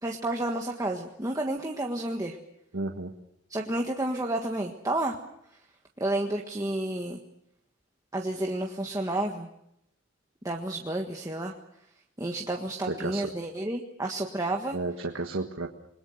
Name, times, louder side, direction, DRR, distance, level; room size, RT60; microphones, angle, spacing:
voice 1, 0.0-2.4 3.5-5.1 6.0-7.2 8.1-9.5 10.4-11.5 12.2-14.8, right 1 dB, 15° right, 1 dB, 1.5 m, -30 dB
voice 2, 2.7-3.1 12.9-13.3 14.7-15.7, right 2 dB, 80° right, 4 dB, 1.6 m, -32 dB
28.0 x 21.5 x 6.5 m, 0.80 s
head